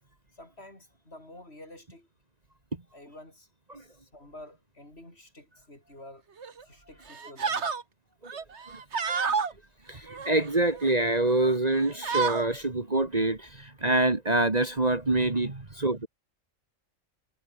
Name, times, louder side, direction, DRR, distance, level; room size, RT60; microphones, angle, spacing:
voice 1, 0.3-2.1 2.9-3.5 3.8-6.2 6.6-7.8, left 1 dB, 50° left, 7.4 m, -49 dB
sound 1, 6.4-6.6 7.1-7.8 8.3-9.5 10.1-10.9 11.4-11.6 11.8-12.5, right 5 dB, 55° right, 1.9 m, -30 dB
voice 2, 8.7-9.3 9.9-16.1, right 2 dB, 30° right, 2.1 m, -26 dB
omnidirectional pair, 1.4 m